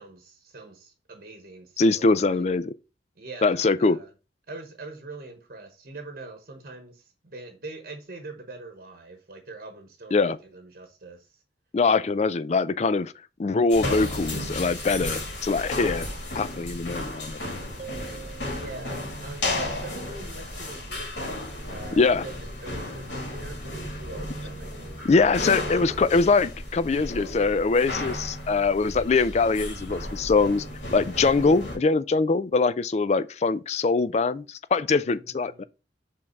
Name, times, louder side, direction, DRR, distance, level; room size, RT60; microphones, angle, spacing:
voice 1, 0.0-2.4 3.2-4.1 4.5-11.4 18.5-21.4 21.7-25.0 35.0-35.6, right 3 dB, 50° right, 1.0 m, -43 dB
voice 2, 1.8-2.7 3.4-4.0 10.1-10.4 11.7-13.1 13.4-16.1 16.3-17.4 21.9-22.2 25.0-30.6 30.9-35.6, left 4 dB, 35° left, 0.3 m, -23 dB
sound 1, 13.7-31.8, left 1 dB, 75° left, 2.4 m, -34 dB
sound 2, 17.8-19.3, right 8 dB, 35° right, 0.4 m, -44 dB
5.5 x 3.6 x 5.2 m
head